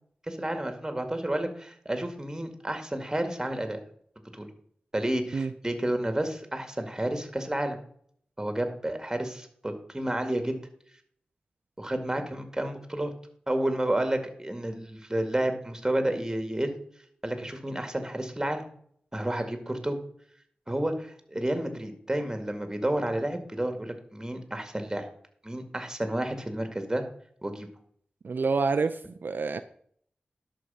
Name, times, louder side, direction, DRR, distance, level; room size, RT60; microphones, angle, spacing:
voice 1, 0.3-3.8 4.3-4.5 4.9-7.8 8.4-10.6 11.8-13.1 13.5-16.7 17.2-18.6 19.1-20.0 20.7-25.1 25.4-27.0 27.4-27.7, right 1 dB, 15° right, 7 dB, 2.1 m, -30 dB
voice 2, 28.2-29.6, right 4 dB, 70° right, 9 dB, 0.5 m, -27 dB
11.0 x 6.6 x 5.6 m, 0.62 s
wide cardioid pair, 65°, 3 cm